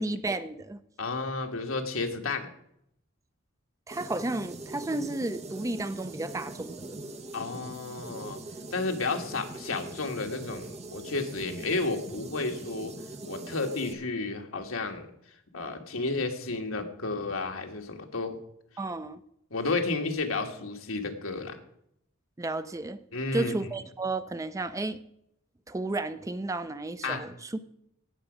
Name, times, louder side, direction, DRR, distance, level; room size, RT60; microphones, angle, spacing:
voice 1, 0.0-0.8 3.9-7.0 18.8-19.2 22.4-23.0 23.3-25.0 25.7-27.6, right 2 dB, 15° right, 12 dB, 0.5 m, -33 dB
voice 2, 1.0-2.5 7.3-8.4 8.7-12.9 13.2-15.1 15.5-18.4 19.5-21.6 23.1-23.6 27.0-27.3, left 3 dB, 75° left, 4 dB, 1.6 m, -32 dB
sound 1, 3.9-13.9, right 2 dB, 30° right, 1.1 m, -42 dB
17.5 x 7.0 x 5.1 m, 0.75 s
head